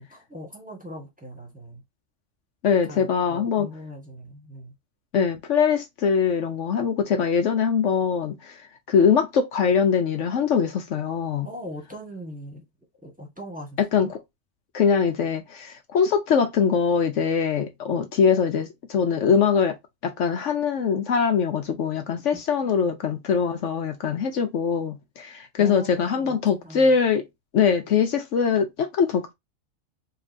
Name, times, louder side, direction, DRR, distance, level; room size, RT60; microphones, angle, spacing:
voice 1, 0.0-1.8 2.9-4.7 11.4-12.6 13.0-14.1 22.6-22.9 25.6-26.4 26.6-27.0, equal, 5° right, 1.4 m, -40 dB
voice 2, 2.6-3.7 5.1-8.6 8.9-11.5 13.8-14.2 14.7-19.7 20.0-27.3 27.5-29.3, left 6 dB, 65° left, 1.0 m, -22 dB
5.2 x 2.6 x 2.6 m
omnidirectional pair, 1.4 m